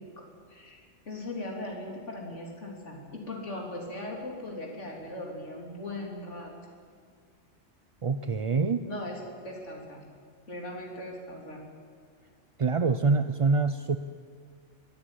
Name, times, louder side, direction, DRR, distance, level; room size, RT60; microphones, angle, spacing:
voice 1, 0.0-6.5 8.8-10.0 10.5-11.6, left 1 dB, 75° left, 0 dB, 3.8 m, -39 dB
voice 2, 8.0-8.8 12.6-14.0, right 4 dB, 40° right, 10 dB, 0.5 m, -25 dB
22.5 x 14.0 x 10.0 m, 2.1 s
omnidirectional pair, 1.2 m